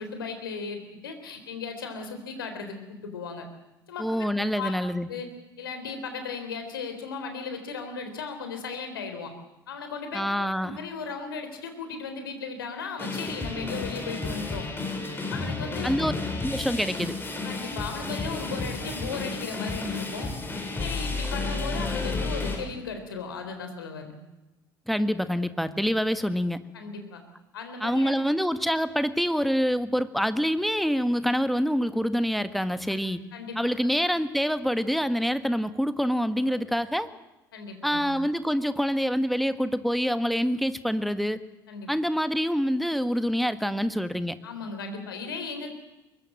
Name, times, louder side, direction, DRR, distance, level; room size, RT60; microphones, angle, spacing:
voice 1, 0.0-3.5 3.9-4.1 4.5-4.7 5.1-5.3 5.6-9.3 9.7-14.7 15.3-15.9 17.4-20.3 20.8-24.1 26.7-27.2 27.5-28.1 33.3-33.6 36.5-36.6 37.5-38.1 41.7-41.9 44.4-45.7, left 5 dB, 75° left, 7 dB, 3.9 m, -36 dB
voice 2, 4.0-5.1 10.1-10.8 15.8-16.1 16.4-17.2 24.9-26.6 27.8-33.2 33.6-37.1 37.8-41.4 41.9-44.4, equal, ahead, 12 dB, 1.5 m, -26 dB
sound 1, 13.0-22.6, left 3 dB, 20° left, 7.3 m, -32 dB
23.0 x 20.5 x 7.7 m, 0.97 s
figure-of-eight pair, 60°, 12 cm